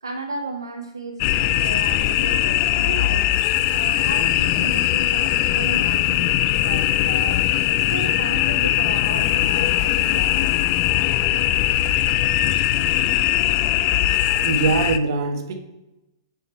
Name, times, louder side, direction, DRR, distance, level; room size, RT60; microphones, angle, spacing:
voice 1, 0.0-7.4 7.9-10.4, right 3 dB, 75° right, 4 dB, 0.6 m, -34 dB
sound 1, 1.2-15.0, left 14 dB, 35° left, 0.3 m, -20 dB
voice 2, 14.4-15.5, right 4 dB, 50° right, 5 dB, 1.2 m, -22 dB
6.4 x 4.9 x 4.4 m, 0.96 s
figure-of-eight pair, 110°, 2 cm